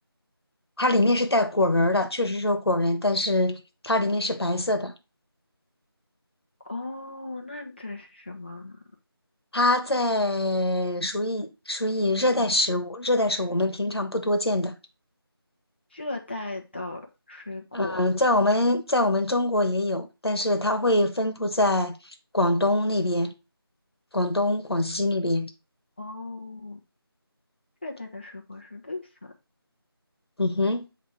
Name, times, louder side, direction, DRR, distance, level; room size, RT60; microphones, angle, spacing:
voice 1, 0.8-4.9 9.5-14.7 17.7-21.9 22.3-23.3 24.1-25.5 30.4-30.9, left 1 dB, 80° left, 1.3 m, -24 dB
voice 2, 6.7-8.8 15.9-17.0 17.3-18.0 26.0-26.8 27.8-29.0, left 2 dB, 25° left, 1.0 m, -36 dB
8.2 x 2.9 x 4.6 m
figure-of-eight pair, 175°, 13 cm